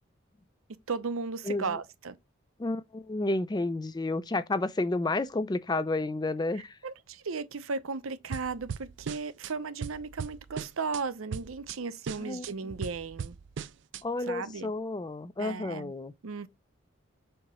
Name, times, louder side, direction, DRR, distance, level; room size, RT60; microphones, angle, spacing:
voice 1, 0.9-2.1 6.8-13.3 14.3-14.7 15.4-15.9 16.2-16.5, right 4 dB, 85° right, 0.7 m, -35 dB
voice 2, 1.4-1.8 2.6-6.8 12.2-12.5 14.0-16.1, left 2 dB, 20° left, 0.3 m, -31 dB
sound 1, 8.3-9.5 9.8-11.0 11.3-11.8 12.1-14.0, right 6 dB, 60° right, 0.3 m, -38 dB
7.6 x 2.9 x 5.5 m
head